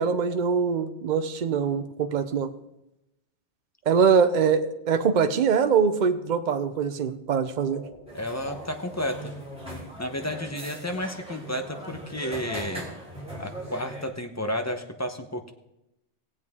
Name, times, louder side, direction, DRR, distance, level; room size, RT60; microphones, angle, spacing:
voice 1, 0.0-2.5 3.9-7.8, right 6 dB, 45° right, 9 dB, 0.8 m, -23 dB
sound 1, 7.2-9.1, left 1 dB, 70° left, 3.9 m, -47 dB
voice 2, 8.1-9.3 10.0-12.9 13.4-15.5, left 1 dB, 15° left, 6 dB, 0.8 m, -32 dB
sound 2, 8.1-14.1, right 1 dB, 5° right, 2.9 m, -39 dB
18.5 x 8.1 x 3.6 m, 0.88 s
omnidirectional pair, 1.2 m